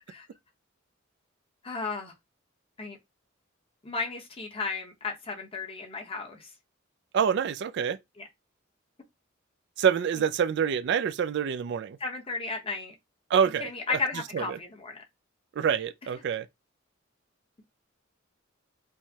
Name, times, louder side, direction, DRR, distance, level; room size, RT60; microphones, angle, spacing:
voice 1, 1.6-2.1 2.8-3.0 3.8-6.5 8.2-8.3 12.0-12.9 13.6-15.0, left 4 dB, 30° left, 0.9 m, -34 dB
voice 2, 7.1-8.0 9.8-12.0 13.3-14.0 14.3-14.6 15.6-16.5, right 7 dB, 60° right, 0.3 m, -26 dB
4.6 x 2.1 x 2.8 m
head